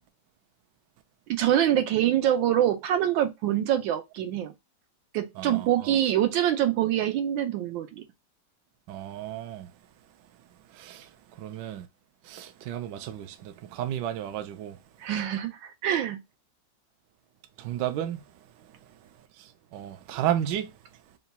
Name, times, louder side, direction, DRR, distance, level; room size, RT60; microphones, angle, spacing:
voice 1, 1.3-4.5 5.1-8.0 15.0-16.2, right 11 dB, 90° right, 1.5 m, -25 dB
voice 2, 5.4-6.0 8.9-9.7 10.7-11.1 11.4-11.9 12.2-14.8 17.6-18.2 19.4-20.7, right 11 dB, 75° right, 1.1 m, -33 dB
3.9 x 2.3 x 4.0 m
omnidirectional pair, 2.0 m